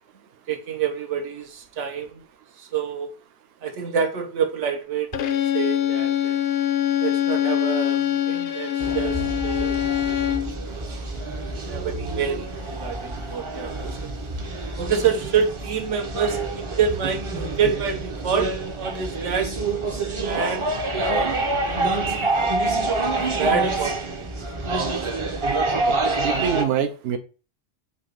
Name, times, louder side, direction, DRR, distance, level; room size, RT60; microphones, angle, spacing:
voice 1, 0.5-2.2 2.6-3.1 3.6-6.5 7.0-9.7 10.6-11.1 11.7-14.1 14.8-19.5 20.2-20.7 21.1-22.5 23.4-24.3, right 6 dB, 80° right, 1.1 m, -27 dB
Bowed string instrument, 5.1-10.6, left 11 dB, 65° left, 0.7 m, -23 dB
sound 1, 8.8-26.6, right 3 dB, 35° right, 0.5 m, -27 dB
voice 2, 25.8-27.2, right 8 dB, 65° right, 0.8 m, -25 dB
5.2 x 2.7 x 3.8 m
omnidirectional pair, 1.2 m